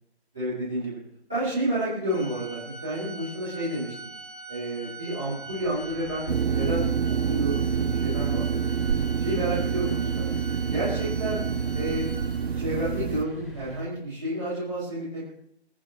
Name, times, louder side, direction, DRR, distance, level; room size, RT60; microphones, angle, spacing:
voice 1, 0.3-1.0 1.3-3.9 4.5-6.3 6.5-6.9 7.2-8.5 9.2-10.3 10.7-11.4 11.7-12.1 12.5-15.3, right 1 dB, ahead, -18 dB, 1.3 m, -30 dB
Organ, 2.1-12.7, right 3 dB, 40° left, 2.1 m, -43 dB
sound 1, 5.6-13.8, right 1 dB, 20° left, 5.5 m, -42 dB
sound 2, 6.3-13.2, right 7 dB, 70° right, 0.5 m, -27 dB
27.5 x 10.0 x 3.1 m, 0.70 s
figure-of-eight pair, 175°, 33 cm